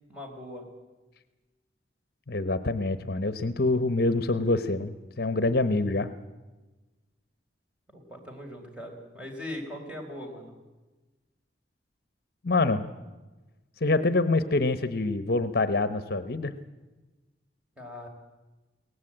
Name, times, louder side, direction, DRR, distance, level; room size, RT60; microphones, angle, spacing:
voice 1, 0.1-0.7 7.9-10.6 17.8-18.1, left 1 dB, 5° right, 1 dB, 4.3 m, -40 dB
voice 2, 2.3-6.1 12.4-12.8 13.8-16.5, left 2 dB, 55° left, 12 dB, 1.0 m, -26 dB
23.0 x 18.0 x 8.7 m, 1.2 s
head